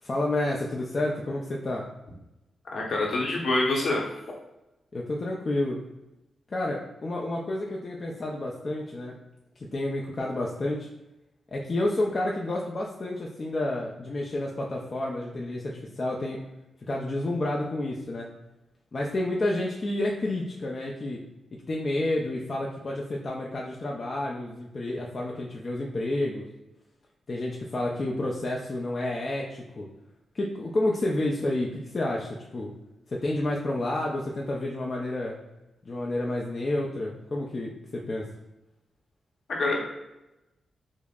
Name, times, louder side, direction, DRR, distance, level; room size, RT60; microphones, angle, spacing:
voice 1, 0.0-1.9 4.9-5.8 6.5-9.1 9.6-10.9 11.5-16.4 16.9-18.3 18.9-21.2 21.7-26.5 27.3-29.8 30.3-32.7 33.1-35.4 35.9-38.3, left 1 dB, 45° left, -2 dB, 0.4 m, -30 dB
voice 2, 2.7-4.0 39.5-39.8, left 2 dB, 65° left, -1 dB, 0.8 m, -25 dB
5.0 x 2.0 x 2.4 m, 0.96 s
cardioid pair, 70°, 0 cm